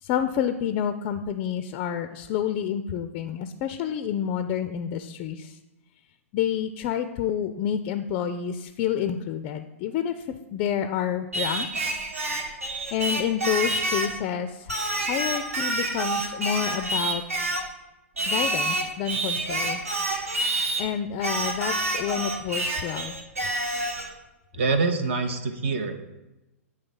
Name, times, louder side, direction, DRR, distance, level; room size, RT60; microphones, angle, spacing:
voice 1, 0.0-5.6 6.3-12.1 12.9-17.2 18.3-19.9 20.8-23.2, left 9 dB, 35° left, 9 dB, 0.4 m, -29 dB
Singing, 11.3-14.2 14.7-17.7 18.2-20.9 21.2-24.1, right 2 dB, 75° right, 1.2 m, -28 dB
voice 2, 24.5-26.0, right 4 dB, 50° right, 7 dB, 0.6 m, -25 dB
9.0 x 3.2 x 5.3 m, 1.0 s
figure-of-eight pair, 105°, 8 cm